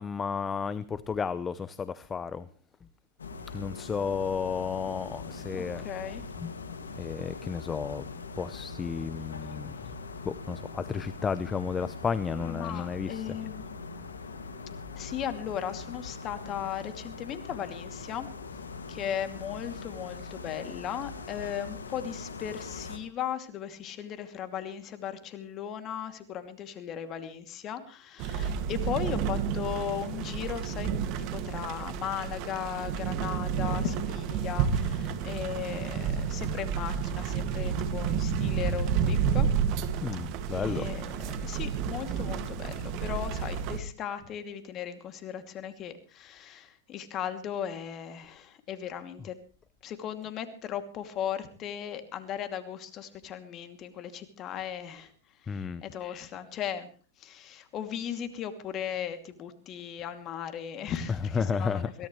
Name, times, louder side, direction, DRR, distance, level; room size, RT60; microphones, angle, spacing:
voice 1, 0.0-2.4 3.5-5.8 6.4-6.5 7.0-8.0 8.4-9.8 10.3-13.3 40.0-40.9 55.5-55.8 61.3-61.9, left 6 dB, 20° left, 16 dB, 0.8 m, -32 dB
sound 1, 3.2-23.0, left 4 dB, 90° left, 2.2 m, -42 dB
voice 2, 5.5-6.2 12.3-13.6 14.9-18.3 18.9-30.9 31.2-39.5 40.5-49.4 49.8-55.1 55.4-56.9 57.2-62.1, left 9 dB, 35° left, 10 dB, 2.6 m, -37 dB
sound 2, 28.2-43.8, right 7 dB, 50° right, 2.1 m, -30 dB
23.0 x 17.0 x 3.2 m, 0.37 s
hypercardioid pair, 105°, 0 cm